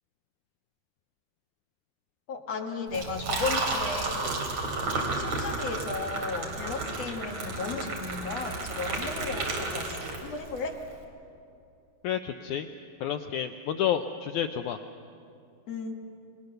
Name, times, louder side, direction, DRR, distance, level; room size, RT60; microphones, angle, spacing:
voice 1, 2.3-4.3 4.7-10.8 15.7-15.9, left 4 dB, 55° left, 2 dB, 2.4 m, -35 dB
Liquid, 2.9-10.6, right 3 dB, 55° right, 3.9 m, -32 dB
voice 2, 12.0-12.7 13.0-14.8, left 9 dB, 80° left, 7 dB, 1.8 m, -30 dB
27.5 x 21.0 x 6.7 m, 2.6 s
omnidirectional pair, 4.1 m